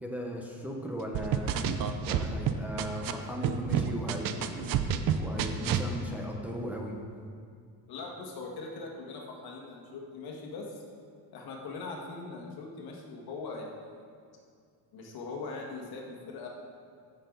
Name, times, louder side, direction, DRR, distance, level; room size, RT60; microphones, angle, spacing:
voice 1, 0.0-1.5 2.0-4.7 5.2-7.0, equal, 5° right, -1 dB, 0.9 m, -37 dB
sound 1, 1.1-3.1 3.4-5.9, right 8 dB, 55° right, 0.7 m, -29 dB
voice 2, 7.9-10.8 11.3-14.0 14.9-16.5, left 3 dB, 65° left, 0 dB, 1.8 m, -41 dB
15.0 x 6.6 x 3.9 m, 2.2 s
cardioid pair, 145°, 39 cm